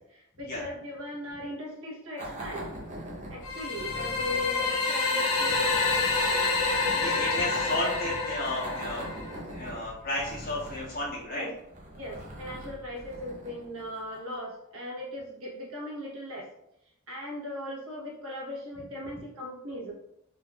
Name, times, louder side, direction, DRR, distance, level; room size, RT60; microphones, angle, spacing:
voice 1, 0.0-2.7 3.3-6.5 7.1-7.2 11.3-11.5 11.9-16.5 17.1-19.9, left 1 dB, 70° right, -3 dB, 1.0 m, -38 dB
sound 1, 2.2-14.3, right 1 dB, 35° right, 0.6 m, -42 dB
sound 2, 3.4-9.4, left 4 dB, 85° left, 0.8 m, -28 dB
voice 2, 6.9-9.1 9.5-11.4, left 1 dB, 45° left, -6 dB, 1.2 m, -33 dB
3.4 x 3.1 x 2.3 m, 0.80 s
head